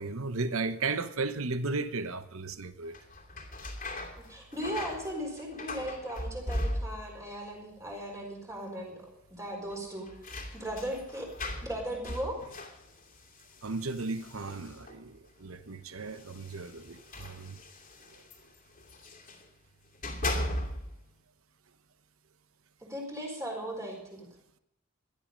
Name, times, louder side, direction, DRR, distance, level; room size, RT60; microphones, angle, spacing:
voice 1, 0.0-3.0 13.6-17.6, right 3 dB, 70° right, 1.0 m, -35 dB
sound 1, 2.8-7.3 7.5-8.2 8.5-8.6 9.7-15.1 16.0-19.5 19.9-21.0, left 1 dB, 35° left, 2.6 m, -39 dB
voice 2, 4.3-10.1 10.5-11.3 11.6-12.4 22.9-24.3, equal, 15° right, 4.5 m, -37 dB
17.5 x 12.5 x 5.2 m
head